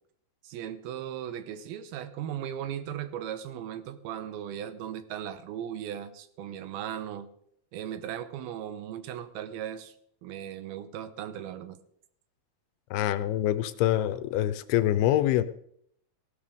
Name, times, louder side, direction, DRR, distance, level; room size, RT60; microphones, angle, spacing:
voice 1, 0.4-7.3 7.7-9.9 10.2-11.8, right 10 dB, 80° right, 12 dB, 2.7 m, -37 dB
voice 2, 12.9-15.4, left 12 dB, 85° left, 12 dB, 2.6 m, -25 dB
16.5 x 11.5 x 3.6 m, 0.68 s
omnidirectional pair, 4.5 m